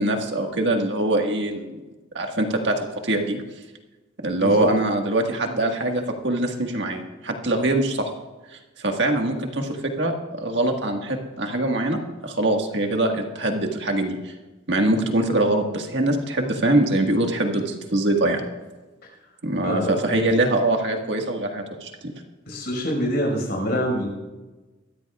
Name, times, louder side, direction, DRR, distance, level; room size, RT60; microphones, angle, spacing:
voice 1, 0.0-1.7 2.1-3.4 4.2-8.1 8.8-14.3 14.7-18.4 19.4-22.1, right 1 dB, 65° right, 3 dB, 1.6 m, -23 dB
voice 2, 19.6-20.0 22.5-24.1, equal, 55° left, 0 dB, 5.3 m, -25 dB
23.5 x 13.5 x 2.4 m, 1.2 s
head